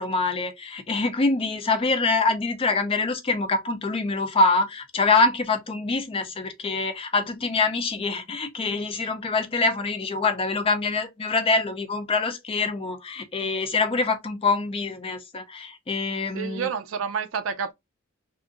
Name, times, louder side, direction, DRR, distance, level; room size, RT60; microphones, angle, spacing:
voice 1, 0.0-16.7, left 3 dB, 25° left, 0.4 m, -25 dB
voice 2, 16.3-17.7, right 6 dB, 70° right, 0.4 m, -29 dB
2.8 x 2.5 x 2.4 m
head